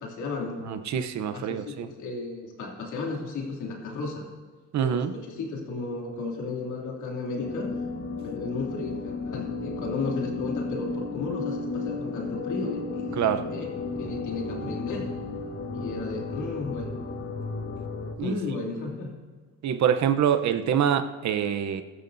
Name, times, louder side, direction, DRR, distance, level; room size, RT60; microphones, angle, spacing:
voice 1, 0.0-0.6 1.3-4.2 4.8-7.7 8.2-13.7 14.0-15.1 15.7-16.9 18.2-19.1, left 3 dB, 80° left, -1 dB, 2.8 m, -34 dB
voice 2, 0.7-1.9 4.7-5.1 13.2-13.4 18.2-18.3 19.6-21.8, right 8 dB, 65° right, 9 dB, 0.8 m, -25 dB
sound 1, 7.4-18.1, left 3 dB, 45° left, 1.5 m, -33 dB
16.0 x 12.5 x 2.7 m, 1.5 s
cardioid pair, 90°, 30 cm